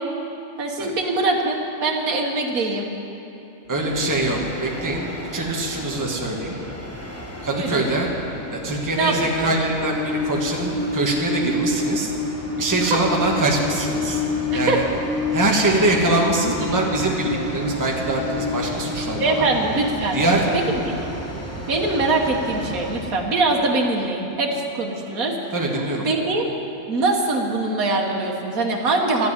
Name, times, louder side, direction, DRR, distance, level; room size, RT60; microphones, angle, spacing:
voice 1, 0.6-2.9 7.5-7.9 8.9-9.2 9.4-9.6 12.8-13.0 14.5-14.8 19.2-20.2 20.5-21.1 21.7-25.3 26.0-26.5 26.9-29.3, right 2 dB, 80° right, 1 dB, 1.7 m, -23 dB
Train, 3.7-23.2, left 2 dB, 10° left, 1.1 m, -29 dB
voice 2, 3.7-6.5 7.4-8.1 8.5-12.1 12.6-14.2 14.5-14.8 15.3-19.5 20.1-20.5 25.5-26.0, right 2 dB, 15° right, -1 dB, 1.3 m, -23 dB
12.0 x 8.2 x 9.7 m, 2.8 s
omnidirectional pair, 1.5 m